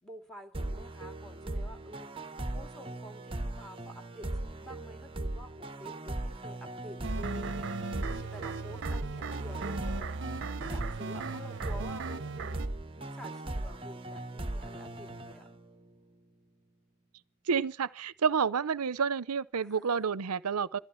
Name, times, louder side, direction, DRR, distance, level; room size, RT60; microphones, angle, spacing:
voice 1, 0.0-10.1 10.6-12.6 13.0-15.5 19.6-20.1, equal, ahead, 2.3 m, -49 dB
sound 1, 0.5-16.0, right 1 dB, 25° right, 1.0 m, -39 dB
sound 2, 7.0-12.7, right 3 dB, 55° right, 0.8 m, -37 dB
voice 2, 17.5-20.8, right 6 dB, 90° right, 0.6 m, -29 dB
16.0 x 14.5 x 5.7 m
head